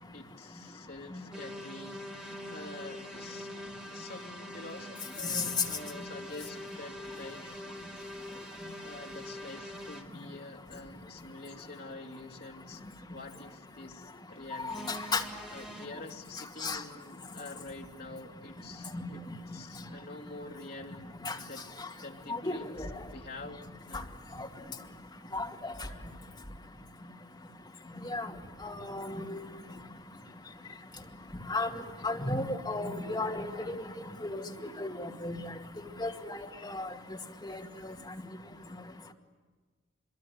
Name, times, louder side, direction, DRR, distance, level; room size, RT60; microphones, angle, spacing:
voice 1, 0.1-3.5 3.9-7.7 8.8-14.9 15.5-21.6 21.9-22.7 23.0-24.1, left 2 dB, 50° left, 1 dB, 2.9 m, -47 dB
sound 1, 1.3-10.0 14.7-15.9, equal, 5° right, 2.2 m, -44 dB
voice 2, 14.6-15.2 16.6-16.8 18.9-19.0 21.2-21.4 22.3-22.5 22.8-22.9 24.4-24.5 25.3-25.7 28.0-28.3 28.6-29.4 31.5-31.7 32.0-33.8 34.2-34.4 34.8-35.5 36.0-36.9 37.4-37.6, left 2 dB, 20° left, 1 dB, 2.2 m, -34 dB
25.0 x 23.5 x 9.5 m, 1.4 s
head